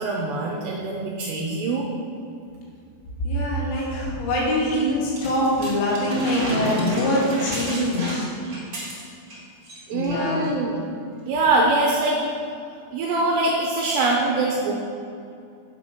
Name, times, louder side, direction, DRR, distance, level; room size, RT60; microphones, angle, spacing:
voice 1, 0.0-1.9 9.9-10.8 11.3-12.2 12.9-14.7, right 2 dB, 80° right, -2 dB, 2.5 m, -23 dB
voice 2, 3.2-8.2 9.9-10.5, left 1 dB, 85° left, -5 dB, 5.1 m, -23 dB
sound 1, 5.2-9.4 9.6-9.8 10.1-10.5 11.3-11.4, right 1 dB, 40° right, 1.2 m, -32 dB
8.7 x 8.1 x 6.0 m, 2.4 s
omnidirectional pair, 6.0 m